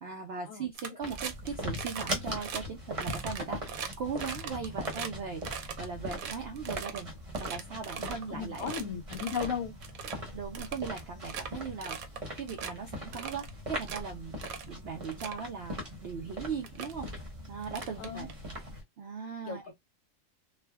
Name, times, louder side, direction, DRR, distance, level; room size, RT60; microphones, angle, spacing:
voice 1, 0.0-7.1 7.4-8.7 10.3-14.3 14.7-17.1 17.5-18.3 19.0-19.7, right 5 dB, 60° right, 0.7 m, -39 dB
sound 1, 0.7-1.5 1.7-2.1 2.4-2.6 3.0-5.1 5.4-7.0 7.3-8.2 8.5-8.8 9.1-9.5 9.8-10.1 10.5-11.5 11.8-12.2 12.5-12.7 13.1-14.0 14.4-14.7 15.0-15.4 16.2-16.3 16.6-16.9 17.6-18.6, right 7 dB, 85° right, 1.1 m, -40 dB
sound 2, 1.0-18.8, equal, 30° right, 0.8 m, -40 dB
voice 2, 8.3-9.7 18.0-18.3 19.5-19.7, left 7 dB, 75° left, 1.1 m, -35 dB
3.2 x 2.1 x 2.2 m
omnidirectional pair, 1.4 m